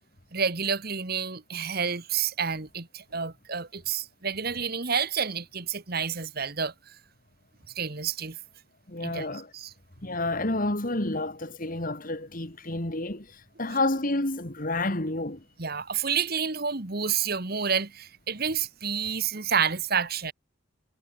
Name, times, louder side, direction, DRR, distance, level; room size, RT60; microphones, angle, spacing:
voice 1, 0.3-6.7 7.7-8.4 9.0-9.3 9.5-9.7 15.6-20.3, right 6 dB, 45° right, 1.5 m, -29 dB
voice 2, 8.9-9.5 10.0-15.4, left 2 dB, 40° left, 2.2 m, -29 dB
head